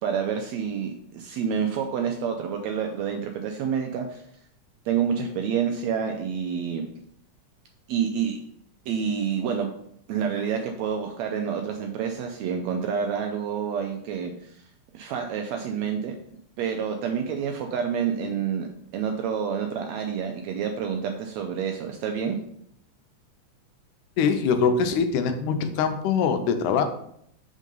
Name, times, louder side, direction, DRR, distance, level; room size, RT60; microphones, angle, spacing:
voice 1, 0.0-4.2 4.9-6.8 7.9-8.4 8.9-9.7 10.1-14.5 14.9-16.2 16.6-18.7 18.9-22.4, right 7 dB, 80° right, 4 dB, 1.6 m, -28 dB
voice 2, 24.2-26.8, left 6 dB, 80° left, 7 dB, 2.1 m, -23 dB
5.3 x 3.6 x 5.3 m, 0.69 s
omnidirectional pair, 3.6 m